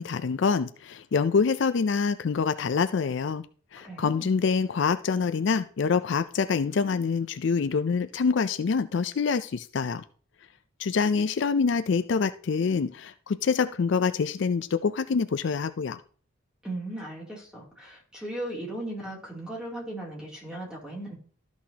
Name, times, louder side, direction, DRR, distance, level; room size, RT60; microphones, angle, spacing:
voice 1, 0.0-3.4 3.7-10.0 10.8-16.0, left 5 dB, 60° left, 12 dB, 0.4 m, -26 dB
voice 2, 3.8-4.3 16.6-21.2, right 1 dB, 5° right, -3 dB, 2.8 m, -37 dB
13.0 x 6.1 x 2.8 m, 0.43 s
head